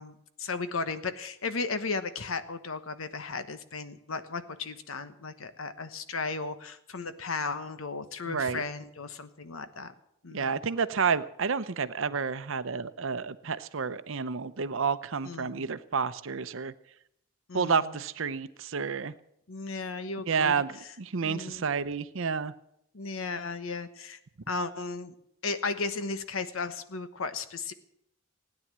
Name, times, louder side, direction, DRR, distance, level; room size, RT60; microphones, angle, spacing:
voice 1, 0.0-9.9 10.2-10.6 15.2-15.7 17.5-18.0 19.5-20.6 21.2-21.7 22.9-24.2 24.5-25.1 25.4-27.7, left 4 dB, 80° left, 11 dB, 1.2 m, -35 dB
voice 2, 8.3-8.6 10.3-16.7 17.5-19.1 20.3-22.5, right 5 dB, 70° right, 13 dB, 0.7 m, -30 dB
17.0 x 9.8 x 7.4 m, 0.77 s
head